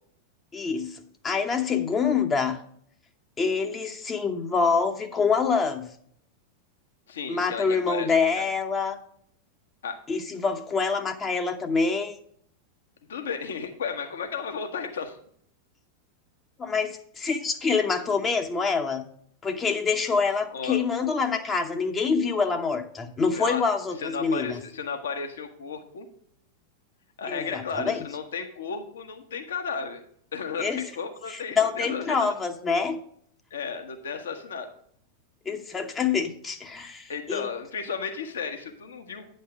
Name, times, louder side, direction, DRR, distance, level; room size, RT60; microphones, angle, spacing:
voice 1, 0.5-2.6 3.4-5.9 7.3-9.0 10.1-12.1 16.6-19.1 19.4-24.6 27.3-28.0 30.6-30.8 31.3-33.0 35.5-37.5, left 5 dB, 20° left, 5 dB, 0.8 m, -26 dB
voice 2, 7.1-8.4 9.8-10.0 13.1-15.2 20.5-20.8 23.3-23.6 24.0-26.1 27.2-30.0 30.3-32.3 33.5-34.7 37.1-39.3, left 5 dB, 65° left, 6 dB, 1.3 m, -34 dB
9.3 x 5.4 x 4.9 m, 0.63 s
figure-of-eight pair, 90°, 0 cm